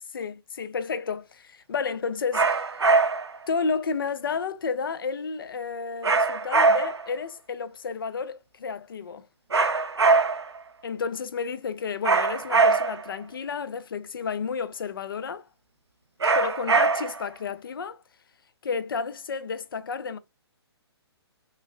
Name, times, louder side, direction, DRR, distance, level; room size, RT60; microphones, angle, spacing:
voice 1, 0.1-2.6 3.5-9.3 10.8-15.5 16.3-18.0 18.6-20.2, left 5 dB, 55° left, 0.4 m, -31 dB
sound 1, 2.3-3.4 6.0-7.1 9.5-10.6 12.0-13.1 16.2-17.3, right 4 dB, 75° right, 0.4 m, -22 dB
3.0 x 2.6 x 2.4 m
figure-of-eight pair, 130°, 14 cm